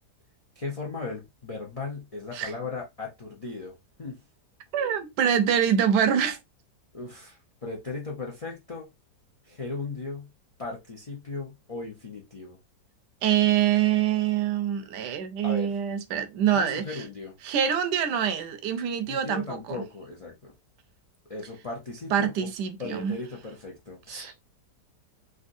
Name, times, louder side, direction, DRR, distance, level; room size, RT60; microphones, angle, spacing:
voice 1, 0.6-4.2 6.9-8.8 9.4-10.3 10.6-12.6 15.4-15.7 16.5-17.3 19.1-20.5 21.3-22.5 22.8-24.3, left 3 dB, 55° left, 0.4 m, -37 dB
voice 2, 4.7-6.4 13.2-17.0 17.4-19.8 22.1-23.2 24.1-24.3, right 9 dB, 80° right, 1.2 m, -25 dB
3.5 x 2.6 x 2.5 m
omnidirectional pair, 1.8 m